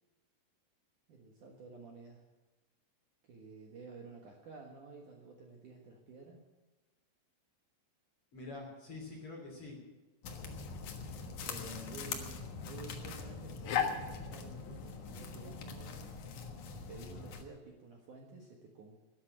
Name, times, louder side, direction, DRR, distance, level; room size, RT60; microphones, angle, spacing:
voice 1, 1.1-2.3 3.2-6.4 11.8-16.1 16.7-19.0, right 4 dB, 60° right, 1 dB, 2.3 m, -52 dB
voice 2, 8.3-9.8 11.4-12.2, left 2 dB, 35° left, 0 dB, 3.4 m, -47 dB
sound 1, 10.2-17.4, left 6 dB, 65° left, 2.0 m, -40 dB
13.0 x 11.0 x 8.9 m, 1.2 s
omnidirectional pair, 5.3 m